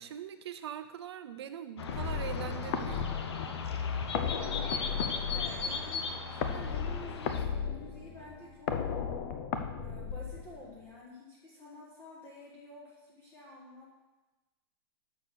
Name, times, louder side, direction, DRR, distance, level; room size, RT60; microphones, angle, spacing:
voice 1, 0.0-3.1, right 9 dB, 75° right, 9 dB, 0.6 m, -42 dB
sound 1, 1.8-7.4, left 5 dB, 75° left, 0.9 m, -37 dB
sound 2, 1.9-10.8, left 6 dB, 40° left, 0.7 m, -35 dB
Wind instrument woodwind instrument, 2.8-8.9, right 6 dB, 35° right, 1.3 m, -58 dB
voice 2, 4.6-8.7 9.8-13.9, left 2 dB, 15° left, -5 dB, 1.4 m, -49 dB
6.8 x 6.6 x 6.0 m, 1.1 s
hypercardioid pair, 150°, 14 cm